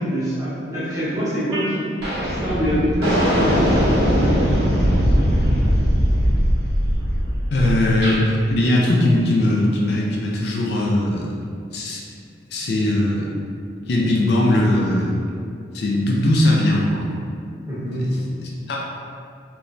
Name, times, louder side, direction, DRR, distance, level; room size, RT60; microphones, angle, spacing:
voice 1, 0.0-1.9 2.2-3.9 17.7-18.0, equal, 15° right, -11 dB, 0.8 m, -24 dB
sound 1, 1.5-1.7 2.0-8.2, equal, 55° right, 0.6 m, -20 dB
voice 2, 7.5-11.3 11.7-12.0 12.5-13.3 13.9-15.1 15.7-17.0 18.0-18.8, left 1 dB, 55° left, -3 dB, 0.3 m, -20 dB
3.0 x 2.1 x 2.5 m, 2.3 s
head